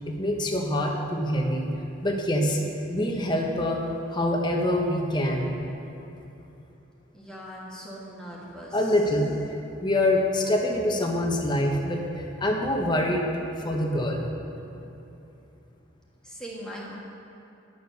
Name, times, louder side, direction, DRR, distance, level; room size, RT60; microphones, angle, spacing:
voice 1, 0.1-1.7 2.0-2.6 2.9-3.8 4.1-5.5 8.7-9.3 9.8-13.3 13.6-14.2, left 1 dB, 25° left, 1 dB, 1.1 m, -25 dB
voice 2, 7.1-8.9 16.2-16.9, equal, 5° left, -5 dB, 1.5 m, -40 dB
11.0 x 7.0 x 6.7 m, 2.9 s
head